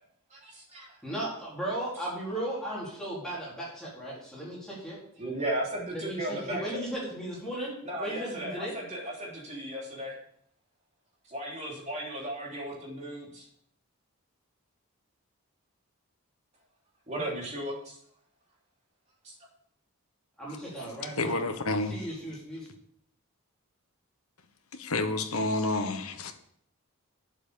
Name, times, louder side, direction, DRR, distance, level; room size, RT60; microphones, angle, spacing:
voice 1, 0.3-1.0 5.2-6.8 7.8-10.1 11.3-13.4 17.1-18.0 19.2-19.3, right 1 dB, 30° right, 3.2 m, -35 dB
voice 2, 1.0-5.0 5.9-8.8 20.4-21.4 21.9-22.7, right 1 dB, 5° left, 4.3 m, -36 dB
voice 3, 21.2-22.1 24.7-26.3, left 2 dB, 75° left, 1.3 m, -29 dB
8.9 x 7.4 x 7.0 m
head